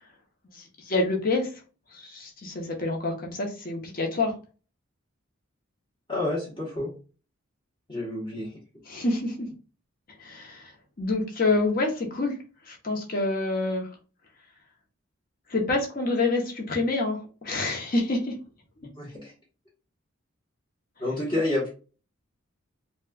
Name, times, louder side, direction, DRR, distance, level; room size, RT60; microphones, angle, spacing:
voice 1, 0.9-1.5 1.9-4.3 8.9-9.5 10.2-10.7 11.0-12.4 12.7-13.9 15.5-18.4, left 2 dB, 45° left, 0 dB, 0.9 m, -27 dB
voice 2, 6.1-6.9 7.9-8.5 19.0-19.3 21.0-21.7, left 2 dB, 25° left, -5 dB, 1.1 m, -29 dB
4.1 x 2.2 x 2.3 m, 0.35 s
head